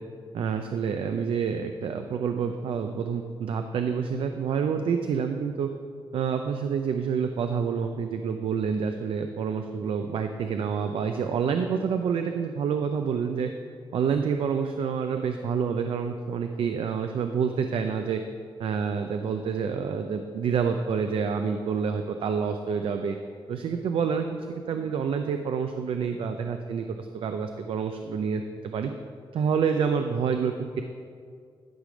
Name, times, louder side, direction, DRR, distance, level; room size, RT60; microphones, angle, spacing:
voice 1, 0.3-5.7 6.1-13.5 13.9-18.2 18.6-23.2 23.5-28.9 29.3-30.8, right 6 dB, 70° right, 6 dB, 0.5 m, -28 dB
11.5 x 5.0 x 5.1 m, 2.2 s
cardioid pair, 90°, 9 cm